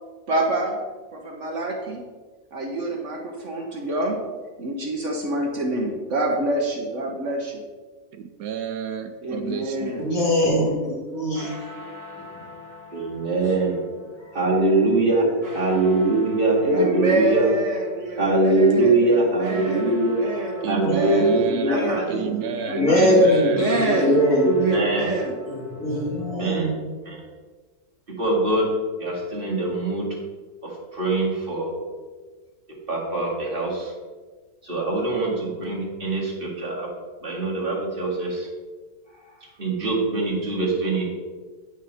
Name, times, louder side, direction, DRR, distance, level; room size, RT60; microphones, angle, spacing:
voice 1, 0.3-0.8 1.1-2.0 2.5-4.2 4.6-7.6 9.2-10.1 16.6-21.3 21.7-22.0 23.0-24.2 24.6-25.3, right 1 dB, 55° right, 1 dB, 1.2 m, -26 dB
voice 2, 3.3-3.9 9.4-10.5 12.1-12.6 12.9-13.1 13.4-13.5 14.1-14.7 17.9-18.1 22.6-24.1 24.5-25.0 25.4-26.2 36.4-36.6 37.7-37.8 39.1-39.7, left 2 dB, 15° left, -3 dB, 1.8 m, -36 dB
voice 3, 8.1-10.0 20.6-23.8, right 8 dB, 75° right, 8 dB, 1.0 m, -31 dB
voice 4, 10.0-11.5 20.8-22.3 22.6-24.5 25.8-26.8, left 1 dB, 65° left, -4 dB, 2.7 m, -22 dB
sound 1, 11.0-26.4, left 2 dB, 15° right, 1.0 m, -43 dB
voice 5, 12.9-13.8 14.3-15.3 15.5-17.5 18.2-20.2 20.7-23.0 24.4-25.1 26.3-26.7 27.1-27.2 28.2-28.7 29.0-30.1 30.6-31.7 32.9-33.9 34.6-36.9 37.2-38.5 39.6-41.0, right 2 dB, 35° right, -4 dB, 2.2 m, -23 dB
8.9 x 6.6 x 4.2 m, 1.4 s
omnidirectional pair, 1.6 m